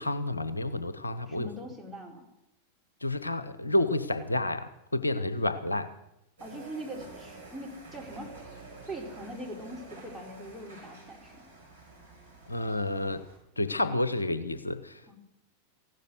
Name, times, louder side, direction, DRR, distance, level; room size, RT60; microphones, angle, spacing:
voice 1, 0.0-1.5 3.0-5.9 12.5-13.2 13.6-15.1, left 1 dB, 80° left, 13 dB, 0.8 m, -30 dB
voice 2, 1.3-2.3 6.4-8.3 8.9-11.4 15.1-15.2, right 1 dB, 5° right, -1 dB, 3.9 m, -42 dB
sound 1, 6.4-13.4, right 2 dB, 75° right, 5.4 m, -49 dB
15.5 x 12.0 x 7.8 m, 0.88 s
figure-of-eight pair, 90°, 0 cm